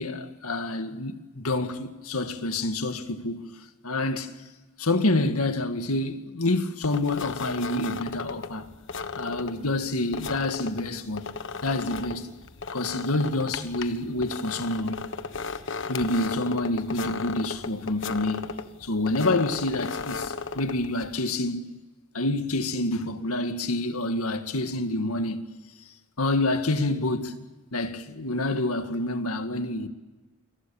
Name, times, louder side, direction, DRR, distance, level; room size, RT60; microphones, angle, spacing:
voice 1, 0.0-3.5 3.8-4.3 4.8-8.7 9.2-11.3 11.6-12.3 12.7-15.1 15.9-18.5 18.8-21.6 22.1-25.5 26.2-27.4 27.7-29.9, left 2 dB, 85° left, 2.0 m, -27 dB
sound 1, 6.8-21.2, left 4 dB, 55° left, 1.3 m, -36 dB
29.5 x 23.0 x 7.2 m
head